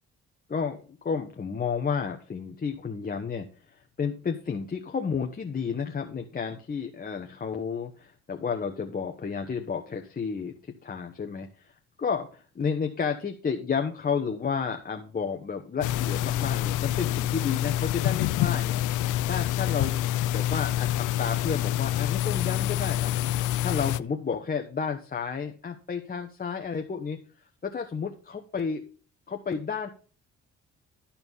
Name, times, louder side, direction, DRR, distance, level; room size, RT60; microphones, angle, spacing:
voice 1, 0.5-11.7 12.0-27.2 27.6-28.8 29.3-29.9, left 6 dB, 30° left, 4 dB, 1.0 m, -32 dB
sound 1, 15.8-24.0, left 13 dB, 85° left, 0.5 m, -27 dB
13.0 x 4.4 x 5.5 m, 0.40 s
cardioid pair, 90°, 30 cm